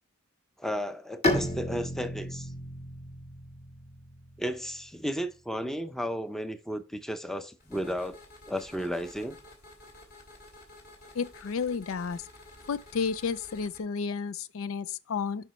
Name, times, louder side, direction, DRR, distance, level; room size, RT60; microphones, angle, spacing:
voice 1, 0.6-2.5 4.4-8.2 8.5-9.4, equal, ahead, 0.6 m, -33 dB
Bowed string instrument, 1.2-4.9, left 1 dB, 30° left, 1.4 m, -33 dB
sound 1, 7.6-13.8, left 1 dB, 50° left, 2.6 m, -51 dB
voice 2, 11.1-12.2 12.7-15.5, left 5 dB, 80° left, 0.4 m, -32 dB
9.1 x 5.5 x 3.2 m
head